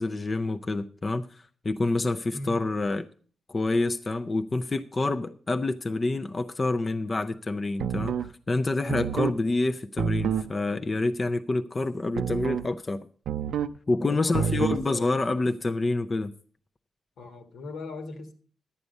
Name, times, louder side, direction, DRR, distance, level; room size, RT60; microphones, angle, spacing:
voice 1, 0.0-3.1 3.5-13.1 13.9-16.3, left 2 dB, 30° left, 0.5 m, -27 dB
voice 2, 2.3-2.7 14.0-15.2 17.2-18.3, left 3 dB, 80° left, 1.6 m, -38 dB
sound 1, 7.8-8.3 8.9-9.4 10.0-10.5 12.2-12.7 13.3-13.8 14.3-14.9, right 8 dB, 80° right, 0.5 m, -28 dB
11.5 x 8.3 x 5.3 m
cardioid pair, 100°, 0 cm